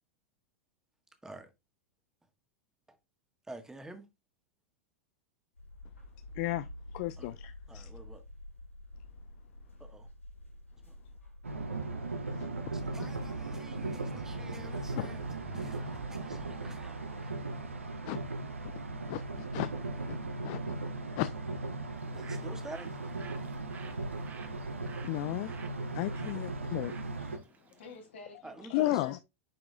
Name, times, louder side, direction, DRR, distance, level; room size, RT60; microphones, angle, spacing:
voice 1, 3.5-4.1 7.2-7.3 7.7-8.2 9.8-10.1 10.8-10.9 12.7-17.4 22.1-22.9 28.4-29.1, right 3 dB, 10° right, 1.5 m, -48 dB
sound 1, 5.5-20.7, left 1 dB, 90° left, 4.7 m, -51 dB
voice 2, 6.3-6.7 6.9-7.9 15.0-15.1 18.1-18.2 19.1-19.7 20.1-20.2 20.4-20.6 21.2-21.3 25.0-25.5 25.9-26.9 27.2-27.3 28.7-29.2, left 16 dB, 45° left, 0.4 m, -33 dB
sound 2, 11.4-27.4, right 2 dB, 85° right, 1.2 m, -38 dB
Bird, 21.9-28.1, right 6 dB, 25° right, 1.2 m, -55 dB
voice 3, 27.2-29.2, left 3 dB, 65° left, 2.8 m, -52 dB
9.4 x 4.8 x 2.4 m
figure-of-eight pair, 90°, 7 cm